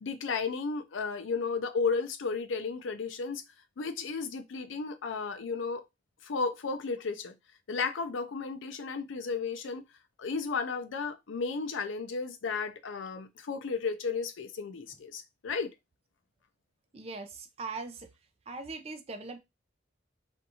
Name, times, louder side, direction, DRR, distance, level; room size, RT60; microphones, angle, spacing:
voice 1, 0.0-3.4 3.8-5.8 6.2-7.3 7.7-9.8 10.2-15.7, left 4 dB, 90° left, 0.5 m, -33 dB
voice 2, 16.9-18.1 18.5-19.4, right 3 dB, 35° right, 0.4 m, -40 dB
2.6 x 2.3 x 2.8 m
head